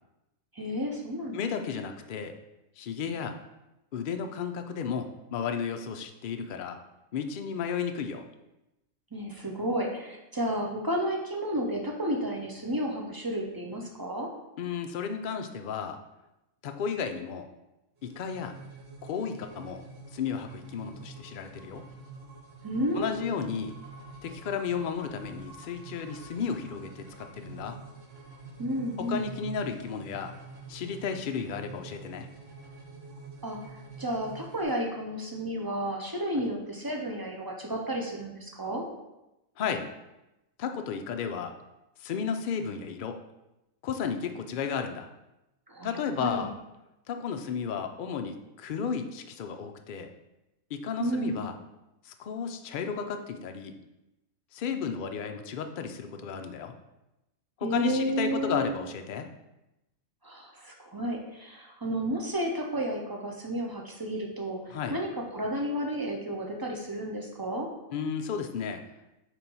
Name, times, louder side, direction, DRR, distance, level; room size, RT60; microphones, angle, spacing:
voice 1, 0.5-1.4 9.1-14.3 22.6-23.3 28.6-29.4 33.4-33.6 34.0-38.9 45.7-46.5 51.0-51.4 57.6-58.7 60.2-67.7, equal, 30° right, 0 dB, 0.4 m, -32 dB
voice 2, 1.3-2.3 2.8-3.4 3.9-6.8 7.1-8.2 14.6-16.0 16.6-17.5 18.0-18.5 19.0-19.8 20.1-21.8 22.9-23.7 24.2-27.8 29.0-30.3 30.7-32.3 39.6-39.9 40.6-41.5 42.0-43.2 43.8-45.1 45.8-46.5 47.1-50.1 50.7-51.5 52.0-53.8 54.5-56.7 57.6-59.3 64.7-65.0 67.9-68.8, left 6 dB, 70° left, 6 dB, 0.5 m, -33 dB
sound 1, 18.0-34.6, right 3 dB, 45° right, 1.2 m, -46 dB
4.5 x 4.0 x 5.4 m, 0.94 s
omnidirectional pair, 1.5 m